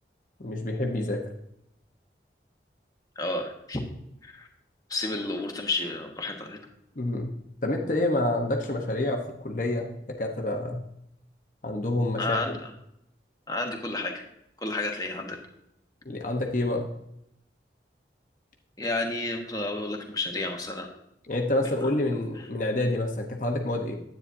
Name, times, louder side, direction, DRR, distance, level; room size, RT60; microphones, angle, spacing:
voice 1, 0.4-1.2 7.0-7.3 7.6-10.8 11.6-12.6 16.0-16.9 21.3-24.0, left 1 dB, 45° left, 2 dB, 1.0 m, -28 dB
voice 2, 3.2-3.8 4.2-4.5 4.9-6.6 12.2-12.7 13.5-14.2 14.6-15.4 18.8-20.9 21.8-21.9, left 2 dB, 20° left, 2 dB, 1.3 m, -31 dB
9.9 x 9.0 x 2.7 m, 0.79 s
head